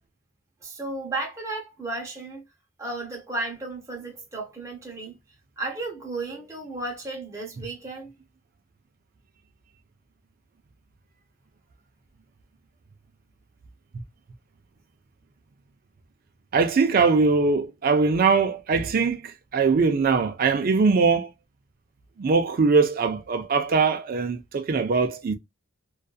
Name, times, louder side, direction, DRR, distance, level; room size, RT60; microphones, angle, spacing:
voice 1, 0.6-2.4 2.8-5.2 5.6-8.1, right 2 dB, 15° right, 0.8 m, -34 dB
voice 2, 16.5-21.3 22.2-25.4, right 4 dB, 45° right, 0.4 m, -21 dB
2.5 x 2.3 x 2.3 m
head